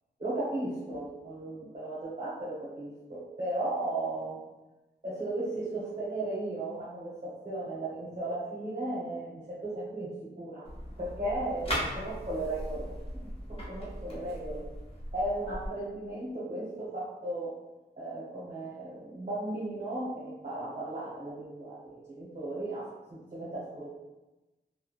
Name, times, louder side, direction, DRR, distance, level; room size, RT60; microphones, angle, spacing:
voice 1, 0.2-4.4 5.0-10.1 10.4-10.7 11.0-14.6 15.1-17.5 18.0-22.8 23.1-23.9, right 2 dB, 40° right, -9 dB, 1.0 m, -36 dB
sound 1, 10.6-15.7, equal, 35° left, 0.8 m, -38 dB
3.1 x 2.2 x 2.3 m, 1.1 s
wide cardioid pair, 75°, 18 cm